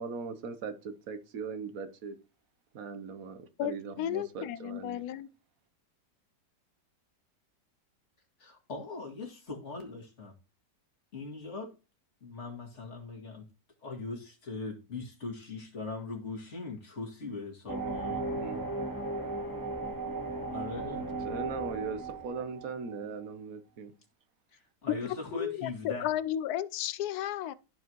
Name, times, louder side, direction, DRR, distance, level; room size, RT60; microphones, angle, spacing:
voice 1, 0.0-2.2 2.7-5.0 18.3-18.7 21.2-23.9, right 5 dB, 55° right, 1.2 m, -39 dB
voice 2, 3.6-5.3 25.0-25.7 26.0-27.5, left 12 dB, 70° left, 1.0 m, -34 dB
voice 3, 8.4-10.3 11.1-11.7 12.2-13.5 13.8-18.3 20.5-21.1 24.5-26.1, left 3 dB, 40° left, 2.4 m, -40 dB
sound 1, 17.7-23.0, right 3 dB, 20° right, 0.5 m, -36 dB
14.0 x 4.7 x 3.0 m
omnidirectional pair, 1.9 m